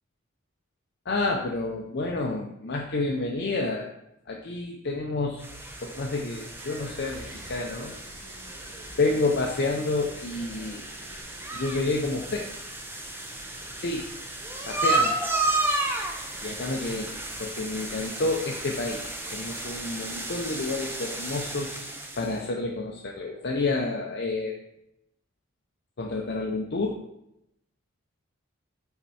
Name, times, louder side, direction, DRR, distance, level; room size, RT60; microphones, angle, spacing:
voice 1, 1.1-3.9 4.3-5.4 5.8-7.9 9.0-10.8 11.5-12.5 13.8-14.1 14.7-15.1 16.4-24.6 26.0-27.0, left 3 dB, 50° left, -1 dB, 0.6 m, -29 dB
sound 1, 5.4-22.4, right 2 dB, 10° right, 0.6 m, -33 dB
sound 2, 6.6-12.5, equal, 85° right, 1.6 m, -50 dB
5.8 x 4.3 x 4.1 m, 0.82 s
head